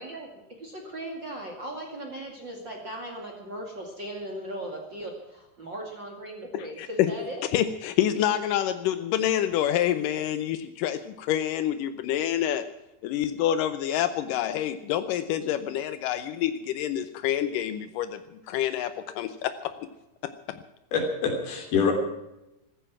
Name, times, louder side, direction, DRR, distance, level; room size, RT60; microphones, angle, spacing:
voice 1, 0.0-7.4, right 1 dB, 35° right, 1 dB, 2.2 m, -38 dB
voice 2, 6.5-12.7 13.0-19.7 20.2-20.6, left 11 dB, 85° left, 11 dB, 1.9 m, -27 dB
voice 3, 20.9-21.9, left 5 dB, 65° left, 4 dB, 4.9 m, -25 dB
15.5 x 15.0 x 5.9 m, 0.92 s
omnidirectional pair, 4.8 m